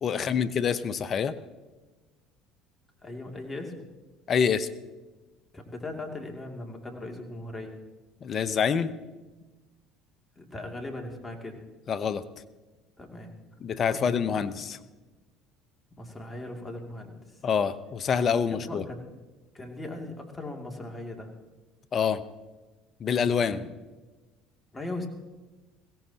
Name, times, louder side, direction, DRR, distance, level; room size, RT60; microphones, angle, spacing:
voice 1, 0.0-1.3 4.3-4.7 8.2-8.9 11.9-12.2 13.6-14.8 17.4-18.8 21.9-22.2 23.0-23.6, left 7 dB, 45° left, 14 dB, 0.8 m, -26 dB
voice 2, 3.0-3.8 5.5-7.8 10.4-11.6 13.0-13.3 16.0-17.4 18.5-19.0 19.5-21.3 23.5-23.6 24.7-25.1, left 2 dB, 20° left, 2 dB, 2.6 m, -39 dB
21.5 x 16.5 x 2.9 m, 1.2 s
hypercardioid pair, 80°, 0 cm